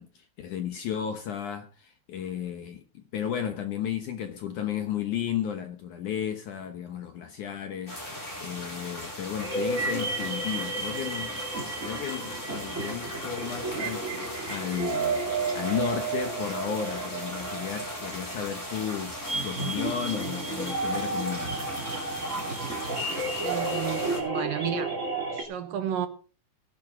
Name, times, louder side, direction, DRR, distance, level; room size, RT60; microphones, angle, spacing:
voice 1, 0.0-11.4 11.8-21.9, left 9 dB, 65° left, 2.1 m, -34 dB
sound 1, 7.9-24.2, left 1 dB, 15° left, 5.2 m, -38 dB
sound 2, 9.4-25.4, right 3 dB, 25° right, 1.9 m, -32 dB
voice 2, 23.4-25.0 25.3-26.1, right 9 dB, 65° right, 2.7 m, -32 dB
17.0 x 11.5 x 3.8 m
omnidirectional pair, 4.7 m